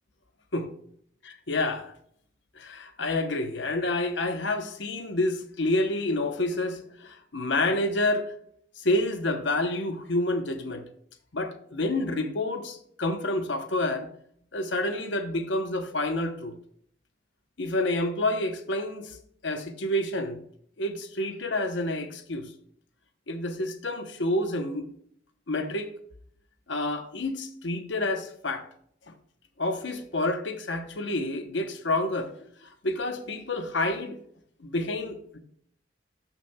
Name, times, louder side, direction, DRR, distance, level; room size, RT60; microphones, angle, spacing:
voice 1, 1.5-1.9 2.6-8.3 8.8-10.9 11.3-14.1 14.5-16.5 17.6-19.2 19.4-20.4 20.8-22.5 23.3-24.9 25.5-25.9 26.7-28.7 29.6-32.3 32.8-34.2 34.6-35.4, left 2 dB, 70° left, 0.9 m, -28 dB
13.5 x 5.9 x 2.3 m
head